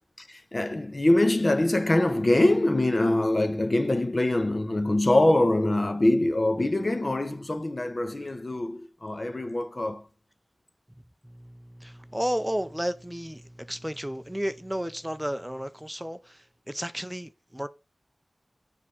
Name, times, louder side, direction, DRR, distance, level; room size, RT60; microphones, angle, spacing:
voice 1, 0.3-10.0, left 1 dB, 45° left, 1.1 m, -24 dB
voice 2, 11.2-17.7, equal, 10° right, 0.6 m, -33 dB
7.4 x 3.6 x 5.9 m
cardioid pair, 40°, 0 cm